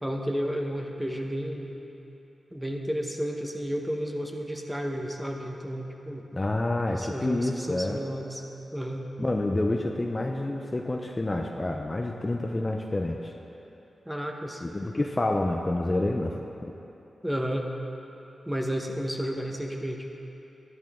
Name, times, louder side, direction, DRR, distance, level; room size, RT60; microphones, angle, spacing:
voice 1, 0.0-1.7 2.5-6.2 6.9-8.4 8.7-9.1 14.0-14.6 17.2-17.7 18.5-20.1, equal, 5° right, 1 dB, 1.4 m, -32 dB
voice 2, 6.3-8.0 9.2-13.3 14.6-16.7, left 2 dB, 30° left, 2 dB, 0.8 m, -28 dB
12.5 x 10.5 x 3.8 m, 3.0 s
supercardioid pair, 40°, 0 cm